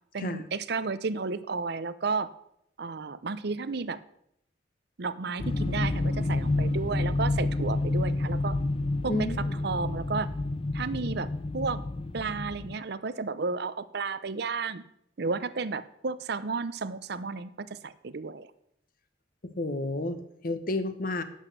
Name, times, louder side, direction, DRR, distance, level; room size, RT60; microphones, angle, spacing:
voice 1, 0.1-2.3 2.8-4.0 5.0-8.6 9.0-10.3 10.7-11.8 12.1-14.8 15.2-18.5, right 4 dB, 55° right, 14 dB, 0.6 m, -32 dB
sound 1, 5.4-12.7, left 2 dB, 30° left, 0.5 m, -29 dB
voice 2, 9.1-9.5 19.4-21.2, left 2 dB, 50° left, 11 dB, 1.1 m, -31 dB
11.5 x 8.1 x 6.6 m, 0.75 s
head